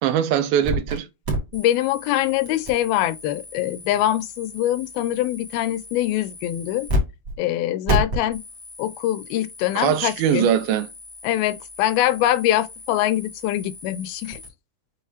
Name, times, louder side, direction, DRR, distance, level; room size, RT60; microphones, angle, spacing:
voice 1, 0.0-1.1 9.8-10.9, right 9 dB, 80° right, 2.5 m, -21 dB
sound 1, 0.6-1.0 1.2-7.0 7.2-7.4 7.9-14.5, equal, 35° right, 2.8 m, -32 dB
voice 2, 1.5-6.9 7.4-8.4 8.8-10.5 11.2-14.4, left 13 dB, 80° left, 2.4 m, -23 dB
6.5 x 4.9 x 2.9 m
omnidirectional pair, 4.4 m